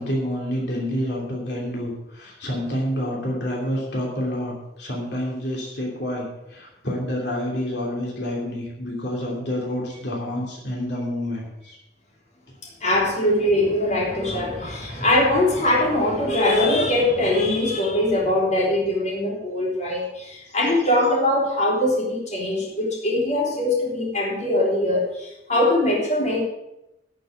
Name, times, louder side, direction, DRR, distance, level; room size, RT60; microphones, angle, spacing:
voice 1, 0.0-11.8, equal, 70° left, -2 dB, 2.9 m, -28 dB
voice 2, 12.8-26.4, left 1 dB, 40° left, -3 dB, 3.4 m, -22 dB
12.0 x 6.5 x 7.6 m, 0.90 s
head